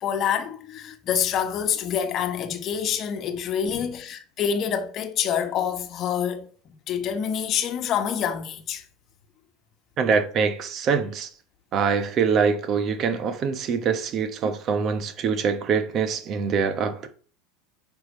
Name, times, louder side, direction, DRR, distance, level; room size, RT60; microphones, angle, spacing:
voice 1, 0.0-8.8, left 8 dB, 45° left, 1.2 m, -27 dB
voice 2, 10.0-11.3 11.7-17.1, right 6 dB, 40° right, 1.2 m, -24 dB
9.5 x 5.8 x 3.2 m
hypercardioid pair, 80°, 0 cm